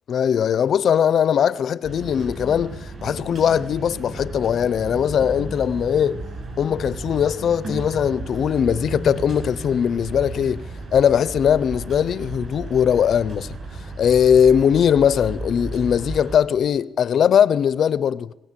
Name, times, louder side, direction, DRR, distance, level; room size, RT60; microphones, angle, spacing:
voice 1, 0.1-6.2 6.6-10.7 10.9-13.6 14.0-18.3, left 8 dB, 55° left, 0.6 m, -20 dB
sound 1, 1.8-16.4, right 2 dB, 40° right, 7.2 m, -34 dB
21.0 x 17.0 x 7.5 m
cardioid pair, 145°, 0 cm